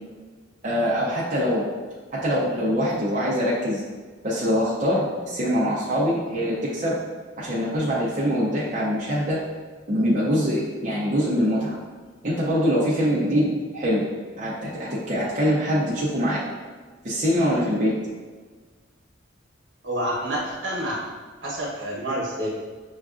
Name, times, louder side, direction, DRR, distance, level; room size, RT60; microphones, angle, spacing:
voice 1, 0.6-1.6 2.1-3.8 4.2-7.0 7.4-9.4 9.9-11.8 12.2-14.0 14.4-16.4 17.0-17.9, equal, 40° right, -7 dB, 0.6 m, -23 dB
voice 2, 19.8-21.0 21.4-22.5, right 1 dB, 70° right, -4 dB, 1.0 m, -28 dB
6.2 x 2.4 x 2.4 m, 1.4 s
head